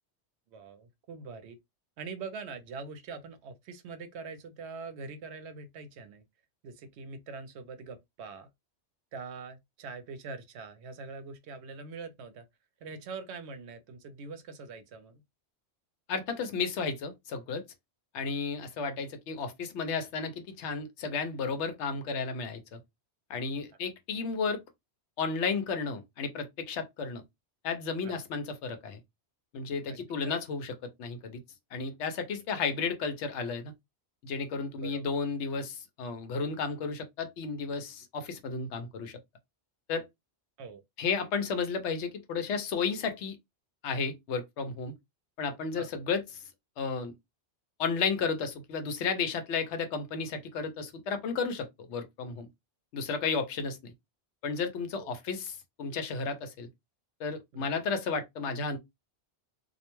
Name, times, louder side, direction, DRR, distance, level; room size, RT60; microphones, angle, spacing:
voice 1, 0.5-1.6 2.0-6.2 6.6-8.5 9.1-12.5 12.8-15.2 28.0-28.2 29.9-30.4 34.8-35.1 40.6-40.8 45.7-45.9 55.0-55.1 57.5-57.7, right 4 dB, 75° right, 0.8 m, -43 dB
voice 2, 16.1-17.6 18.1-22.8 23.3-24.6 25.2-27.2 27.6-29.0 29.5-31.4 31.7-33.7 34.2-39.2 39.9-40.1 41.0-43.4 43.8-44.9 45.4-46.4 46.8-47.1 47.8-52.5 52.9-53.9 54.4-55.5 55.8-56.7 57.2-58.8, left 5 dB, 85° left, 0.9 m, -33 dB
2.3 x 2.1 x 2.9 m
omnidirectional pair, 1.2 m